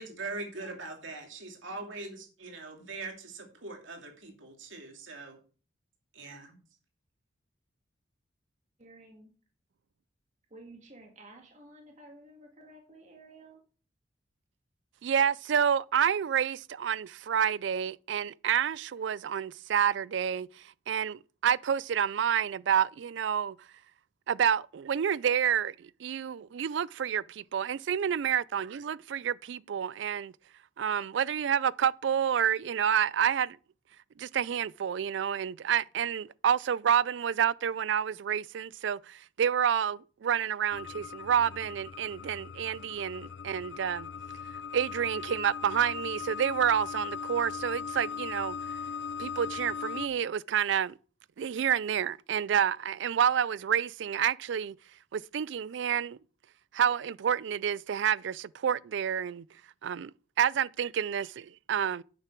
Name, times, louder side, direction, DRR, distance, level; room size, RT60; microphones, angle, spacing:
voice 1, 0.0-5.4 6.1-6.6, right 3 dB, 90° right, 2.5 m, -42 dB
voice 2, 8.8-9.3 10.5-13.6, right 2 dB, 40° right, 1.9 m, -52 dB
voice 3, 15.0-23.6 24.3-30.3 30.8-33.6 34.2-44.1 44.7-48.6 49.2-50.9 51.4-54.8 55.1-56.2 56.7-59.5 59.8-62.0, right 8 dB, 65° right, 0.3 m, -29 dB
sound 1, 40.7-50.1, left 6 dB, 70° left, 0.5 m, -39 dB
9.1 x 6.7 x 4.5 m
head